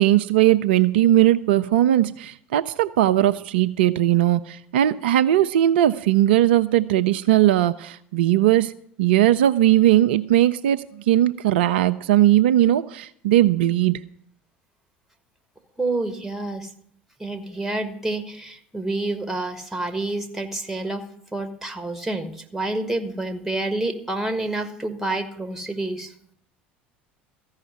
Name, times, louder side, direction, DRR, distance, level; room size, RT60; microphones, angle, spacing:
voice 1, 0.0-8.7 9.0-14.0, right 13 dB, 70° right, 0.4 m, -19 dB
voice 2, 15.8-16.7 17.2-21.0 21.3-26.1, right 2 dB, 5° right, 1.7 m, -28 dB
14.0 x 5.6 x 9.3 m
figure-of-eight pair, 70°, 6 cm